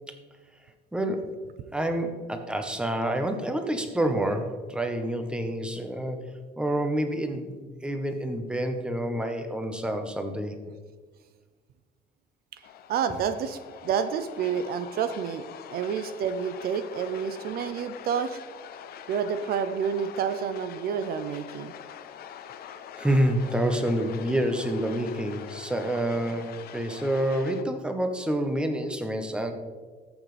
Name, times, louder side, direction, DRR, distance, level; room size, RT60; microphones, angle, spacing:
voice 1, 0.9-1.3 1.7-6.3 6.6-10.6 23.0-29.5, right 1 dB, 5° right, 6 dB, 1.1 m, -28 dB
sound 1, 12.6-27.6, left 9 dB, 65° left, 0.7 m, -44 dB
voice 2, 12.9-15.5 15.7-18.4 19.1-21.7, right 7 dB, 65° right, 11 dB, 0.5 m, -29 dB
14.0 x 6.1 x 3.3 m, 1.4 s
cardioid pair, 110°, 17 cm